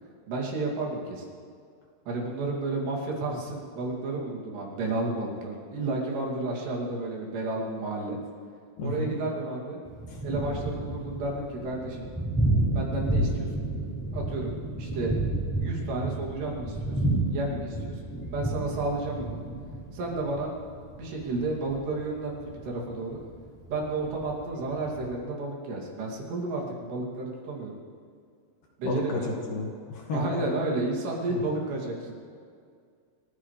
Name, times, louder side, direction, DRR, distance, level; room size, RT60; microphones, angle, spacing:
voice 1, 0.3-1.3 2.1-8.2 8.8-9.8 10.2-12.1 12.7-13.7 14.1-15.1 15.6-17.0 17.3-18.0 18.3-19.4 19.9-20.5 20.9-23.2 23.7-27.8 28.8-29.4 30.1-32.1, right 2 dB, 85° right, -2 dB, 4.8 m, -32 dB
voice 2, 8.8-9.2 10.1-10.2 28.8-30.4 31.3-31.4, left 2 dB, 60° left, 0 dB, 3.3 m, -32 dB
Thunder, 9.8-25.1, right 2 dB, 5° left, 3.6 m, -31 dB
28.5 x 15.0 x 3.3 m, 2.2 s
omnidirectional pair, 4.7 m